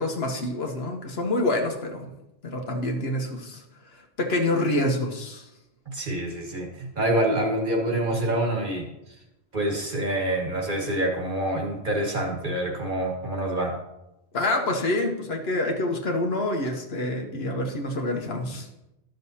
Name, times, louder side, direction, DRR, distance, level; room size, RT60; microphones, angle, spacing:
voice 1, 0.0-2.1 2.4-3.6 3.9-5.5 14.3-18.7, left 1 dB, 65° left, 2 dB, 1.2 m, -27 dB
voice 2, 5.9-8.9 9.5-13.8, right 1 dB, 45° right, 1 dB, 1.5 m, -26 dB
12.5 x 6.5 x 2.8 m, 0.91 s
omnidirectional pair, 1.2 m